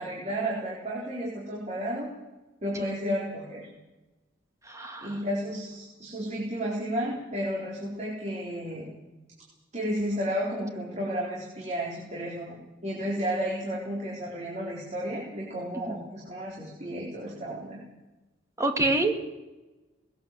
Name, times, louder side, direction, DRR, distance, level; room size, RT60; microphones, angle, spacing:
voice 1, 0.0-2.1 2.6-3.7 5.0-8.9 9.7-17.8, equal, 35° right, -4 dB, 4.3 m, -32 dB
voice 2, 4.7-5.1 15.9-16.0 18.6-19.4, right 2 dB, 15° right, 4 dB, 2.2 m, -27 dB
20.5 x 17.5 x 7.7 m, 1.1 s
head